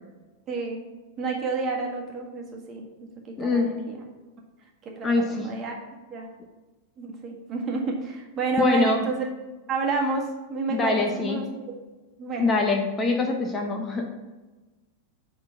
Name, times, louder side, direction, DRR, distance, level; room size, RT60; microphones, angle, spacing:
voice 1, 0.5-0.8 1.2-4.0 5.0-5.8 6.1-6.3 7.0-9.3 9.7-11.8 12.2-12.5, right 3 dB, 30° right, 0 dB, 1.6 m, -30 dB
voice 2, 3.4-3.7 5.0-5.5 8.6-9.1 10.7-11.5 12.4-14.2, left 3 dB, 20° left, 3 dB, 0.8 m, -24 dB
7.6 x 3.9 x 6.8 m, 1.2 s
figure-of-eight pair, 90°, 0 cm